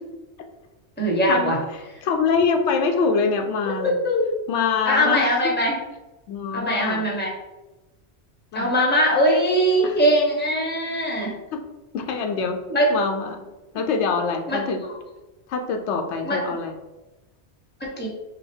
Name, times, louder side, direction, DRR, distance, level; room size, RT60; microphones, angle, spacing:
voice 1, 1.0-1.6 4.0-4.2 4.8-5.8 6.5-7.3 8.5-11.3 12.7-12.9 14.5-14.6 16.2-16.4 17.8-18.1, equal, 10° left, -2 dB, 0.9 m, -21 dB
voice 2, 2.0-4.0 4.5-5.4 6.3-7.0 8.5-8.7 9.8-10.0 11.5-11.6 11.9-12.6 12.9-13.5 13.7-14.8 15.5-16.7, left 5 dB, 85° left, 5 dB, 0.9 m, -24 dB
5.7 x 2.2 x 3.4 m, 1.1 s
omnidirectional pair, 1.1 m